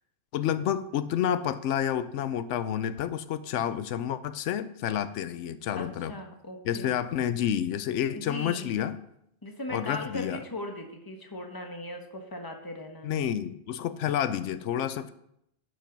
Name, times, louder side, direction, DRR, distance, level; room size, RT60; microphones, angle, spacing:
voice 1, 0.3-6.1 6.6-9.0 9.7-10.4 13.0-15.1, left 10 dB, 90° left, 13 dB, 0.9 m, -29 dB
voice 2, 5.8-7.0 8.1-8.7 9.4-13.2, left 1 dB, 20° left, 3 dB, 1.2 m, -39 dB
11.5 x 5.3 x 5.3 m, 0.76 s
omnidirectional pair, 1.2 m